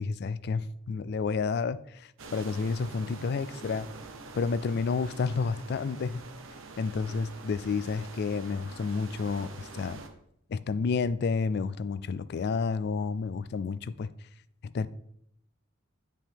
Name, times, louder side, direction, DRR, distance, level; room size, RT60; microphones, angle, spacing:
voice 1, 0.0-3.9 4.3-6.2 6.8-10.0 10.5-14.1 14.6-14.9, left 4 dB, 55° left, 0.3 m, -30 dB
sound 1, 2.2-10.1, right 3 dB, 85° right, 0.9 m, -45 dB
9.7 x 5.3 x 3.5 m
head